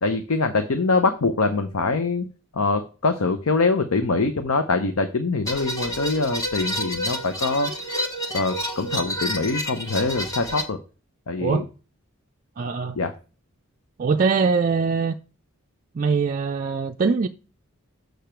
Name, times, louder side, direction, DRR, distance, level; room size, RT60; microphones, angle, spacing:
voice 1, 0.0-2.3 2.5-7.7 8.3-10.8 11.3-11.6 12.9-13.1, left 3 dB, 80° left, 0.7 m, -23 dB
sound 1, 5.5-10.6, equal, 15° left, 1.0 m, -29 dB
voice 2, 12.6-13.0 14.0-15.1 15.9-17.3, right 5 dB, 40° right, 0.4 m, -22 dB
6.8 x 6.4 x 4.5 m
head